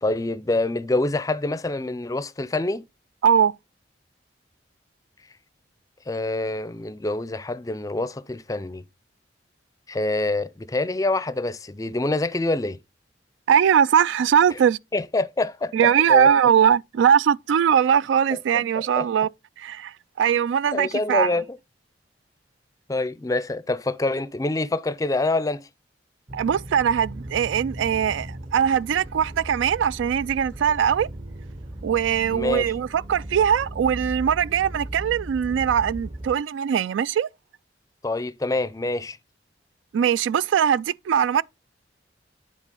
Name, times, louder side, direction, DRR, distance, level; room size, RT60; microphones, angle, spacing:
voice 1, 0.0-2.8 6.1-8.8 9.9-12.8 14.9-15.7 16.1-16.3 18.8-19.1 20.7-21.4 22.9-25.7 32.3-32.7 38.0-39.2, left 2 dB, 20° left, 0.4 m, -26 dB
voice 2, 3.2-3.5 13.5-14.8 15.7-19.3 19.6-21.4 26.3-31.1 31.8-37.3 39.9-41.4, right 8 dB, 85° right, 0.3 m, -21 dB
sound 1, 26.3-36.3, right 1 dB, 25° right, 0.6 m, -37 dB
9.8 x 4.0 x 3.8 m
head